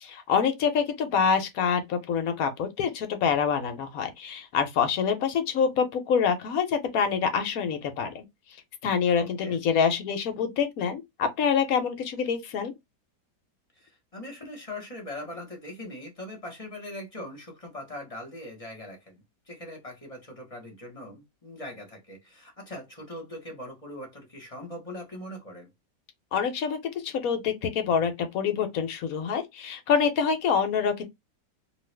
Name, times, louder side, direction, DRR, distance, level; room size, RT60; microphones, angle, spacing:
voice 1, 0.0-8.2 8.8-12.7 26.3-31.0, left 6 dB, 65° left, 1.0 m, -26 dB
voice 2, 9.2-9.6 13.8-25.7, left 1 dB, 25° left, 1.0 m, -41 dB
2.8 x 2.4 x 3.2 m
omnidirectional pair, 1.8 m